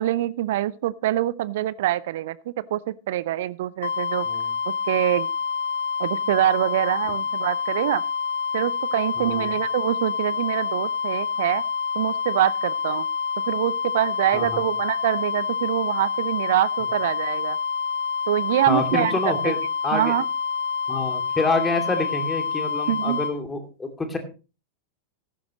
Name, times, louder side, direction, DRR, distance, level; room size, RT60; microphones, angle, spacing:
voice 1, 0.0-4.3 4.7-5.3 6.0-8.0 8.5-11.6 11.9-13.1 13.5-17.6 18.3-19.5 19.9-20.2 22.9-23.2, right 14 dB, 55° right, 20 dB, 0.5 m, -25 dB
sound 1, 3.8-23.3, left 6 dB, 60° left, 1.8 m, -27 dB
voice 2, 9.2-9.5 14.3-14.6 18.7-19.6 19.8-20.1 20.9-24.2, left 3 dB, 15° left, 6 dB, 2.5 m, -27 dB
14.5 x 11.0 x 3.0 m, 0.32 s
figure-of-eight pair, 90°, 0 cm